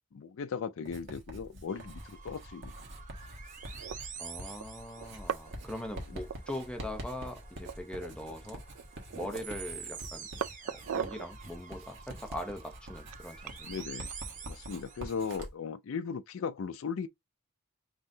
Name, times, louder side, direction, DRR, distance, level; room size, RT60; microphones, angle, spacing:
voice 1, 0.1-2.8 9.1-9.3 13.6-14.1 14.4-17.1, left 6 dB, 70° left, 0.4 m, -37 dB
Writing, 0.9-15.5, right 1 dB, 60° right, 1.3 m, -46 dB
sound 1, 1.7-15.5, right 7 dB, 40° right, 0.9 m, -49 dB
sound 2, 3.6-4.0 4.6-4.7 5.0-5.6 5.9-7.0 7.2-7.3 7.6-8.4 8.8-9.6 10.0-11.3 11.8-13.6, right 8 dB, 75° right, 0.3 m, -39 dB
voice 2, 4.2-8.6 9.1-10.3 10.6-13.7, left 1 dB, 5° left, 0.8 m, -41 dB
5.5 x 2.8 x 2.7 m
head